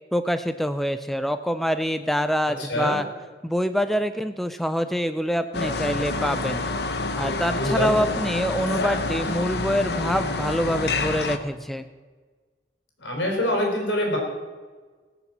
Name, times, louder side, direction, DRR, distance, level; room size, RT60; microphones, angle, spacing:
voice 1, 0.1-3.1 3.4-6.6 7.2-11.8, equal, ahead, 10 dB, 0.4 m, -25 dB
sound 1, 5.5-11.4, left 3 dB, 60° left, 1.0 m, -28 dB
voice 2, 7.6-8.0 13.0-14.2, left 1 dB, 80° left, 1 dB, 4.3 m, -24 dB
20.0 x 7.0 x 7.4 m, 1.4 s
head